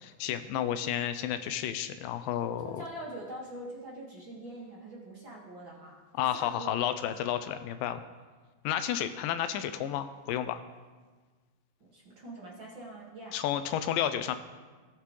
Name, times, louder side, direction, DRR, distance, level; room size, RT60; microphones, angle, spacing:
voice 1, 0.0-2.8 6.2-8.0 8.6-10.6 13.3-14.4, left 10 dB, 85° left, 10 dB, 2.2 m, -31 dB
voice 2, 2.6-6.8 7.1-7.2 11.8-13.4, right 1 dB, 40° right, -5 dB, 2.2 m, -44 dB
17.5 x 7.5 x 3.2 m, 1.4 s
omnidirectional pair, 4.0 m